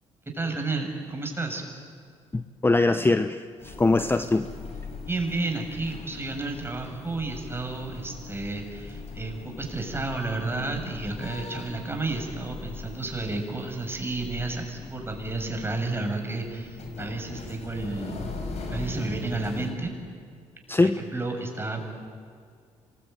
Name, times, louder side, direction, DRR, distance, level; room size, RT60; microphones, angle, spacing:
voice 1, 0.3-1.6 5.1-18.3 18.7-19.9 20.8-21.8, right 2 dB, 20° right, 3 dB, 6.7 m, -31 dB
voice 2, 2.3-4.5 20.7-21.0, left 2 dB, 15° left, 10 dB, 0.8 m, -22 dB
sound 1, 3.6-19.7, left 3 dB, 55° left, 5.2 m, -40 dB
26.0 x 21.5 x 9.2 m, 2.2 s
supercardioid pair, 60°, 13 cm